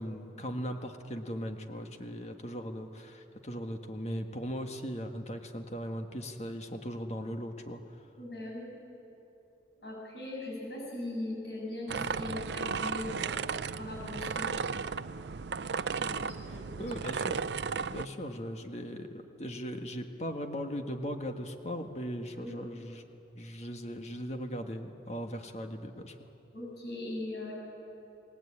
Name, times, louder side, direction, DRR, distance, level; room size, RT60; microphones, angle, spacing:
voice 1, 0.0-7.8 16.7-17.4 17.9-26.1, equal, 40° left, 5 dB, 1.7 m, -38 dB
voice 2, 8.2-8.7 9.8-13.5 13.8-14.6 16.0-16.8 22.3-22.6 26.5-27.5, left 1 dB, 70° left, -2 dB, 7.6 m, -40 dB
sound 1, 11.9-18.1, right 5 dB, 80° right, 0.5 m, -35 dB
28.5 x 19.5 x 8.8 m, 3.0 s
head